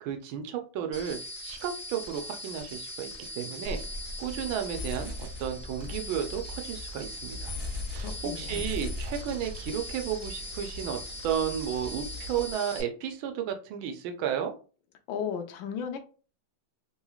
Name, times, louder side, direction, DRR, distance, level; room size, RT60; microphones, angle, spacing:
voice 1, 0.0-3.8 4.2-7.5 7.9-14.5, right 8 dB, 85° right, 5 dB, 1.5 m, -33 dB
sound 1, 0.9-12.8, left 1 dB, 25° right, 1.0 m, -39 dB
sound 2, 3.6-12.5, left 1 dB, 40° left, 0.9 m, -42 dB
voice 2, 8.0-8.6 15.1-16.0, left 7 dB, 80° left, 6 dB, 1.4 m, -35 dB
3.7 x 3.0 x 2.3 m, 0.36 s
omnidirectional pair, 2.2 m